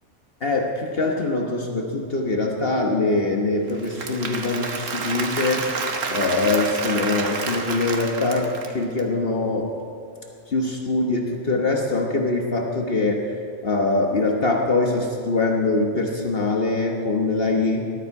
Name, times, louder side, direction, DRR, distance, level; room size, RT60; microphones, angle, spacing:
voice 1, 0.4-5.7 6.1-9.7 10.5-13.3 13.6-17.9, left 3 dB, 50° left, 1 dB, 1.3 m, -23 dB
Applause / Crowd, 3.7-9.0, right 4 dB, 90° right, 1.5 m, -29 dB
20.0 x 12.5 x 4.7 m, 2.3 s
omnidirectional pair, 1.3 m